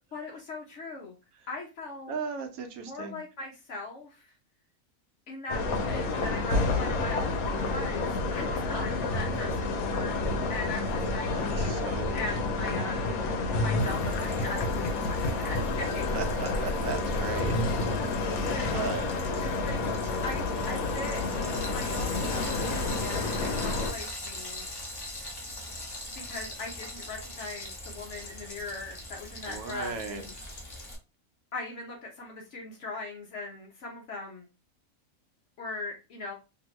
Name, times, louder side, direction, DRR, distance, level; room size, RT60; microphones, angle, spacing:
voice 1, 0.1-1.2 1.5-2.2 2.8-4.3 5.3-11.8 12.1-13.0 13.6-16.0 18.4-18.8 19.4-19.8 20.2-21.2 21.7-24.6 26.1-30.3 31.5-34.5 35.6-36.3, left 3 dB, 60° left, 1.0 m, -40 dB
voice 2, 2.1-3.2 11.3-12.2 12.6-12.7 16.1-17.6 18.3-19.1 29.5-30.5, right 4 dB, 85° right, 1.1 m, -37 dB
sound 1, 5.5-23.9, left 3 dB, 90° left, 1.1 m, -29 dB
Frying (food), 13.8-30.9, left 1 dB, 30° left, 0.4 m, -42 dB
2.8 x 2.6 x 3.0 m
omnidirectional pair, 1.5 m